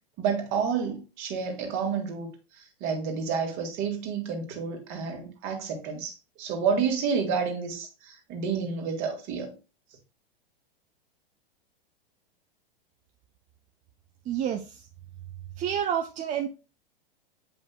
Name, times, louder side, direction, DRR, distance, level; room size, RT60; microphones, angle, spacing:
voice 1, 0.2-2.3 2.6-9.5, right 6 dB, 45° right, 2.0 m, -30 dB
voice 2, 14.3-14.9 15.6-16.5, right 9 dB, 25° right, 0.6 m, -29 dB
7.9 x 5.3 x 2.3 m
hypercardioid pair, 100°, 29 cm